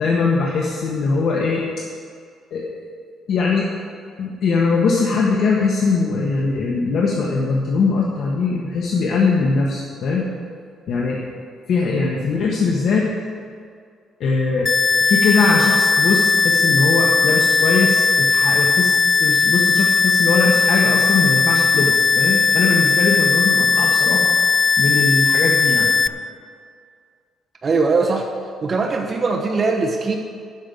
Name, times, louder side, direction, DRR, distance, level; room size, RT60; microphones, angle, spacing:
voice 1, 0.0-1.6 2.5-2.8 3.3-3.7 4.2-10.3 10.9-11.2 11.7-13.1 14.2-14.7 15.0-24.3 24.8-25.9, left 4 dB, 60° left, -3 dB, 1.5 m, -21 dB
sound 1, 14.7-26.1, left 4 dB, 25° left, 0.3 m, -17 dB
voice 2, 27.6-28.3 28.6-30.2, right 4 dB, 35° right, 2 dB, 1.1 m, -20 dB
12.5 x 5.8 x 9.1 m, 2.2 s
cardioid pair, 135°, 0 cm